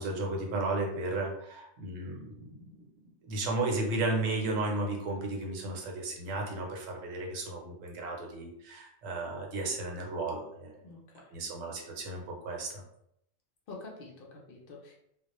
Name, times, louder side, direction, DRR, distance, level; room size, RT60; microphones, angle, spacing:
voice 1, 0.0-2.7 3.2-10.7 11.3-12.8, right 2 dB, 75° right, 0 dB, 1.0 m, -34 dB
voice 2, 10.8-11.4 13.7-14.9, left 3 dB, 65° left, -2 dB, 0.5 m, -47 dB
2.3 x 2.0 x 2.9 m, 0.76 s
omnidirectional pair, 1.4 m